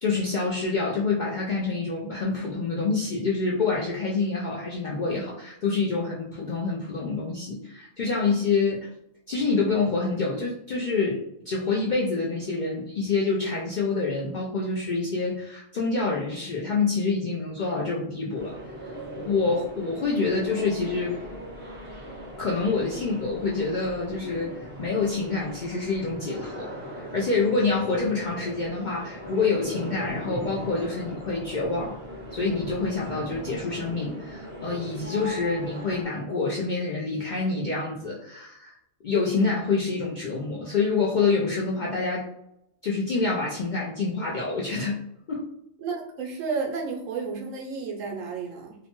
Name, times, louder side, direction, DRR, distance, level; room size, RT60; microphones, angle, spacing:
voice 1, 0.0-8.9 9.3-18.6 19.2-21.2 22.4-24.5 24.8-31.9 32.3-38.7 39.0-42.3 42.8-45.0 45.3-45.4, left 4 dB, 65° left, -4 dB, 0.4 m, -27 dB
sound 1, 18.3-36.0, equal, 10° right, 0.8 m, -39 dB
voice 2, 45.8-48.8, right 4 dB, 85° right, 0 dB, 1.1 m, -32 dB
2.8 x 2.1 x 2.9 m, 0.80 s
omnidirectional pair, 1.3 m